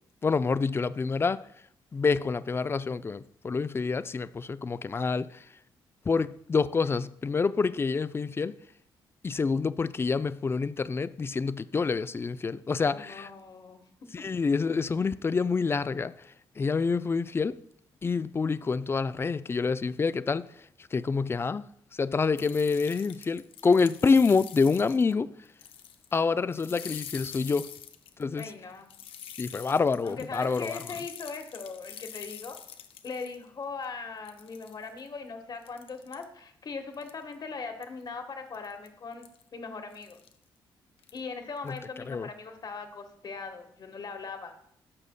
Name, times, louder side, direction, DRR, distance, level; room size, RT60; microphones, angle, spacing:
voice 1, 0.2-1.4 1.9-5.4 6.1-8.6 9.2-13.3 14.1-16.1 16.6-17.6 18.0-20.5 20.9-25.3 26.1-27.7 28.2-28.5 29.4-30.8 41.7-41.8 42.1-42.3, left 4 dB, 25° left, 0.3 m, -27 dB
voice 2, 12.9-13.8 28.4-28.9 30.0-32.6 33.0-39.2 39.5-40.2 41.1-44.5, left 4 dB, 50° left, 1.3 m, -40 dB
sound 1, 22.4-25.1 25.4-26.2 26.5-33.4 33.8-33.9 34.2-35.1 35.6-36.2 36.9-37.3 37.8-38.0 38.5-38.9 39.2-39.4 39.9-40.3 41.0-41.2 41.6-41.8, left 9 dB, 80° left, 0.6 m, -45 dB
11.0 x 6.7 x 2.2 m
supercardioid pair, 65°, 9 cm